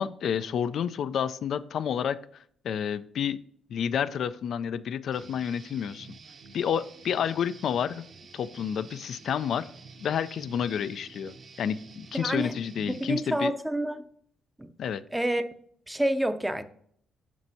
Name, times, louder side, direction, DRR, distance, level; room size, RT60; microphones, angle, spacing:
voice 1, 0.0-3.4 3.7-6.1 6.5-8.0 8.3-9.7 10.0-13.5 14.8-15.0, left 8 dB, 65° left, 0.4 m, -30 dB
Guitar, 5.1-13.1, right 4 dB, 50° right, 0.8 m, -49 dB
voice 2, 12.1-12.5 12.9-14.0 14.6-14.7 15.1-15.4 15.9-16.6, right 1 dB, 10° right, 0.6 m, -28 dB
7.4 x 5.3 x 2.7 m
cardioid pair, 90°, 0 cm